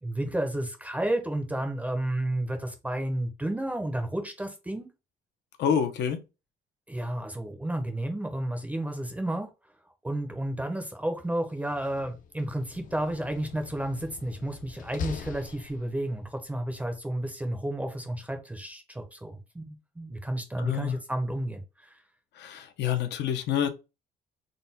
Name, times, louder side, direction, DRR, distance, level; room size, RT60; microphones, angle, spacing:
voice 1, 0.0-4.9 6.9-9.5 10.0-22.0, right 1 dB, 10° right, 0.5 m, -32 dB
voice 2, 5.6-6.2 20.6-21.0 22.4-23.7, left 8 dB, 80° left, 0.7 m, -27 dB
Slam, 11.5-16.2, left 7 dB, 50° left, 0.5 m, -42 dB
3.9 x 2.2 x 3.9 m
cardioid pair, 175°, 18 cm